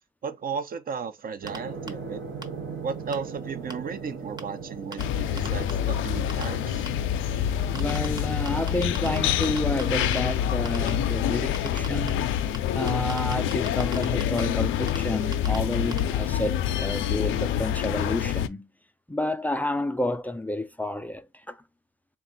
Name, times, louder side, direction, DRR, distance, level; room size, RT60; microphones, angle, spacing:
voice 1, 0.2-2.2 2.8-6.9, right 5 dB, 45° right, 0.7 m, -35 dB
sound 1, 1.4-15.3, right 5 dB, 80° right, 1.1 m, -41 dB
sound 2, 1.5-1.6 1.9-2.0 2.4-2.5 3.1-3.2 3.7-3.8 4.4-4.5 4.9-5.0 5.4-5.7 6.3-6.4 6.9-7.0 7.7-8.2 8.4-9.2 9.4-10.2 10.6-10.9 11.5-12.1 12.5-12.6 12.9-14.4 14.9-15.0 15.3-15.6 15.9-16.0, right 1 dB, 20° right, 0.9 m, -36 dB
sound 3, 5.0-18.5, left 10 dB, 80° left, 0.4 m, -26 dB
voice 2, 7.7-12.2 12.7-18.7 19.1-21.6, left 1 dB, 10° left, 0.3 m, -30 dB
3.6 x 2.3 x 3.9 m
cardioid pair, 90°, 20 cm